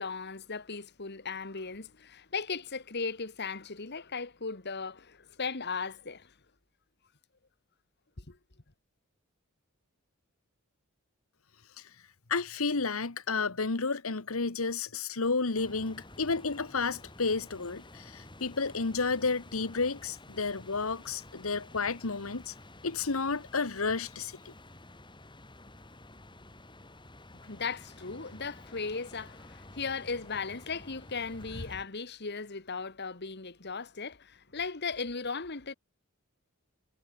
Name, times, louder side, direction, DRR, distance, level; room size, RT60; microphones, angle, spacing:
voice 1, 0.0-6.3 8.2-8.4 27.3-35.7, left 4 dB, 55° left, 1.9 m, -37 dB
voice 2, 12.3-22.5 22.8-24.5, left 4 dB, 85° left, 1.4 m, -31 dB
sound 1, 15.5-31.8, left 2 dB, 25° left, 3.4 m, -51 dB
head